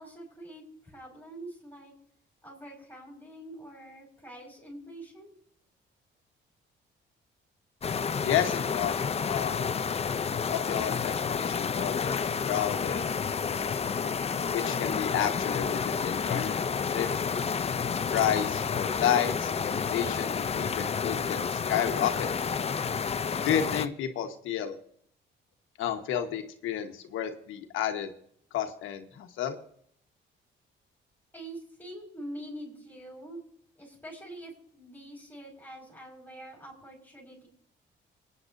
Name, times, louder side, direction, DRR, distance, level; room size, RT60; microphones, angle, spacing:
voice 1, 0.0-1.9 2.4-5.3 31.3-33.4 33.8-37.5, right 1 dB, 10° left, -3 dB, 5.2 m, -45 dB
sound 1, 7.8-23.9, left 6 dB, 30° left, 0.6 m, -30 dB
voice 2, 8.2-9.8 10.5-13.1 14.5-16.7 16.9-17.1 18.1-22.3 23.4-24.8 25.8-28.1 28.5-29.6, left 9 dB, 85° left, 6 dB, 1.3 m, -31 dB
27.5 x 9.6 x 2.7 m, 0.66 s
cardioid pair, 90°, 20 cm